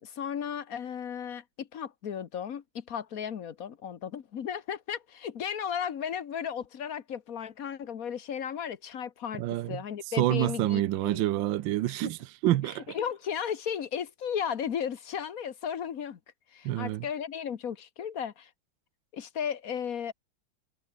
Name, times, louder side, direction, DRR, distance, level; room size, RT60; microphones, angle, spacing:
voice 1, 0.0-9.4 9.7-11.3 11.9-12.1 12.6-16.2 16.5-18.5 19.1-20.1, left 8 dB, 50° left, 1.3 m, -35 dB
voice 2, 9.4-9.8 10.2-13.0 16.6-17.0, right 14 dB, 70° right, 1.4 m, -28 dB
omnidirectional pair, 2.3 m